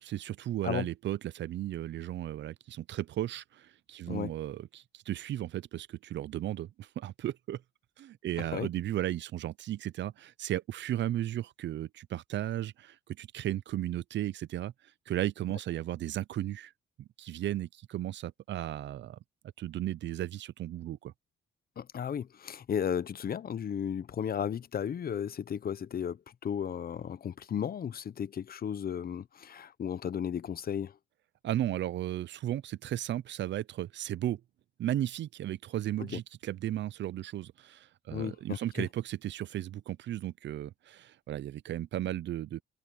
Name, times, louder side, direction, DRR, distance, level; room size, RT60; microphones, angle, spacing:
voice 1, 0.0-7.6 8.0-14.7 15.1-16.7 17.0-19.2 19.6-21.1 31.4-34.4 34.8-42.6, right 13 dB, 65° right, 0.6 m, -35 dB
voice 2, 8.4-8.7 21.8-31.0 36.1-36.2 38.1-38.9, left 8 dB, 50° left, 1.0 m, -34 dB
cardioid pair, 90°, 20 cm